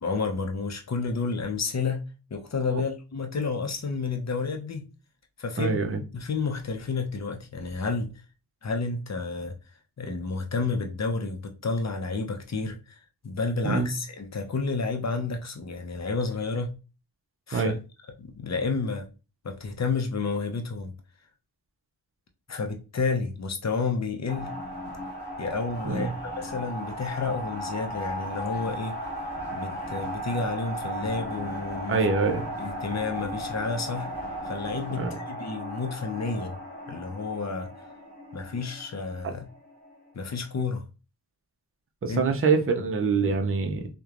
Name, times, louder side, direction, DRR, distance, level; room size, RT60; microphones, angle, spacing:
voice 1, 0.0-2.0 2.3-4.9 5.4-5.8 6.1-8.1 8.6-9.6 10.0-13.0 13.2-16.7 17.5-17.7 18.2-19.1 19.4-20.9 22.5-24.5 25.4-26.1 26.4-29.0 29.5-32.0 32.6-34.1 34.4-36.6 36.9-37.7 38.3-39.5 40.1-40.8 42.1-42.2, left 4 dB, 40° left, 0.6 m, -30 dB
voice 2, 5.6-6.0 13.6-13.9 17.5-17.7 25.8-26.1 31.9-32.5 35.0-35.1 39.2-39.3 42.0-43.9, right 4 dB, 35° right, 0.5 m, -25 dB
sound 1, 24.3-40.1, equal, 25° left, 1.4 m, -36 dB
3.0 x 2.1 x 2.4 m
wide cardioid pair, 60°, 41 cm